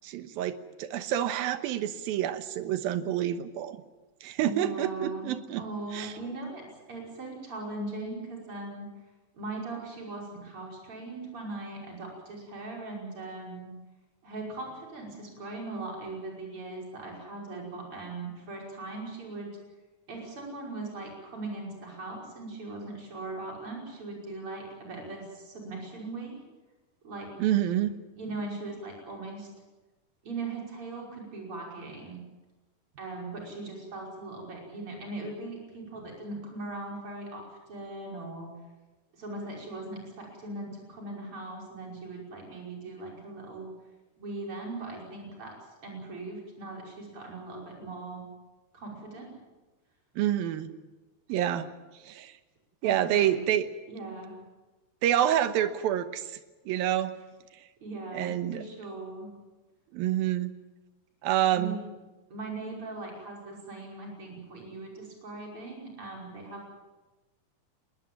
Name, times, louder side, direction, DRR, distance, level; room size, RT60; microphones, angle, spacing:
voice 1, 0.0-3.8 4.2-5.6 5.9-6.1 27.4-28.0 50.2-50.8 51.3-51.7 52.0-52.3 52.8-53.7 55.0-56.4 56.7-57.1 58.1-58.6 59.9-60.5 61.2-61.8, right 11 dB, 80° right, 11 dB, 2.9 m, -28 dB
voice 2, 4.4-8.9 9.3-13.7 14.2-19.5 20.1-26.4 27.0-27.3 28.1-29.5 30.2-32.2 33.0-38.5 39.1-43.7 44.2-45.5 45.8-48.3 48.7-49.4 52.8-53.4 53.9-54.4 57.8-59.3 61.5-61.8 62.3-66.7, right 2 dB, 35° right, -1 dB, 6.3 m, -39 dB
21.0 x 19.5 x 8.9 m, 1.2 s
omnidirectional pair, 4.3 m